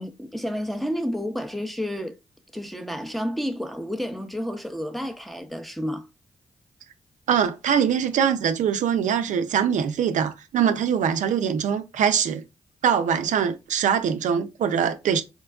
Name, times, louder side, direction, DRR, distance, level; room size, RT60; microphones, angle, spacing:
voice 1, 0.0-2.1 2.5-6.1, equal, ahead, 0.6 m, -30 dB
voice 2, 7.3-12.4 12.8-15.2, right 8 dB, 75° right, 0.4 m, -23 dB
4.3 x 2.2 x 2.3 m
supercardioid pair, 50°, 13 cm